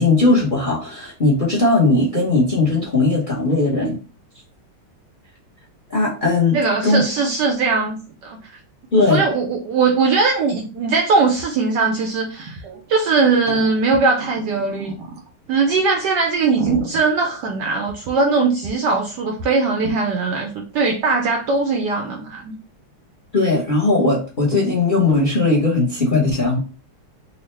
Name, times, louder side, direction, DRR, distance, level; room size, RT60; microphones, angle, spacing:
voice 1, 0.0-4.0 5.9-6.6 6.8-7.1 8.9-9.2 23.3-26.6, left 3 dB, 35° left, -3 dB, 0.8 m, -18 dB
voice 2, 6.5-8.4 9.0-12.6 12.9-15.0 15.5-22.6, right 4 dB, 70° right, 2 dB, 1.0 m, -20 dB
sound 1, 11.4-11.5 11.7-11.8 12.4-12.8 13.3-15.3 15.8-15.9 16.3-18.3 18.6-18.7 19.0-19.1 19.4-19.5 19.8-20.0, right 4 dB, 90° right, 1.8 m, -31 dB
4.4 x 2.3 x 3.1 m, 0.36 s
omnidirectional pair, 2.3 m